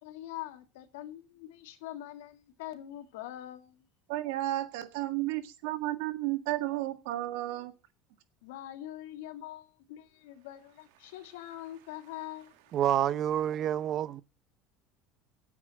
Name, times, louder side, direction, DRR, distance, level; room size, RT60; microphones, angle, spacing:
voice 1, 0.0-3.9 8.4-12.5, left 13 dB, 85° left, 2.0 m, -44 dB
voice 2, 4.1-7.7, right 16 dB, 80° right, 1.7 m, -32 dB
voice 3, 12.7-14.2, right 10 dB, 45° right, 0.7 m, -28 dB
10.0 x 8.5 x 7.5 m
supercardioid pair, 115°, 0 cm